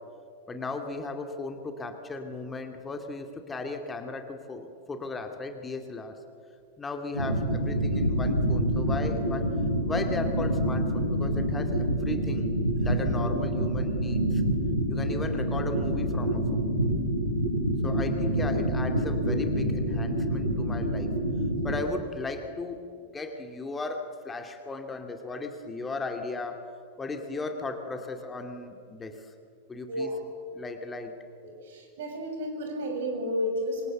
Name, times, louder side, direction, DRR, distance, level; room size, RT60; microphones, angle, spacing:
voice 1, 0.5-6.2 6.8-9.5 9.8-14.4 14.9-16.7 17.8-21.1 21.6-22.8 23.1-26.6 27.0-29.3 29.7-30.1 30.5-31.1, left 3 dB, 15° left, 5 dB, 2.4 m, -36 dB
sound 1, 7.1-21.8, right 1 dB, 90° left, 4.3 m, -27 dB
voice 2, 29.9-30.2 31.4-33.9, equal, 60° right, 3 dB, 7.4 m, -32 dB
27.0 x 26.0 x 8.0 m, 2.3 s
figure-of-eight pair, 90°, 0 cm